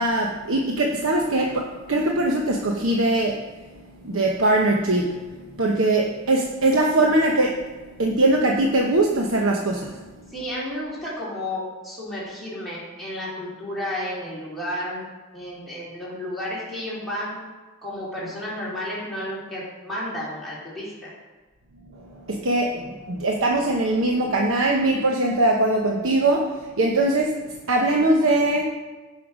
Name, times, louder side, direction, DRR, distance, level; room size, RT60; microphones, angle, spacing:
voice 1, 0.0-3.4 4.0-5.2 5.6-7.6 8.0-10.1 21.9-27.4 27.7-28.7, right 2 dB, 85° right, 0 dB, 1.0 m, -21 dB
voice 2, 10.3-15.0 15.3-17.4 17.8-21.1, left 1 dB, ahead, -9 dB, 3.3 m, -32 dB
16.5 x 5.7 x 5.0 m, 1.2 s
head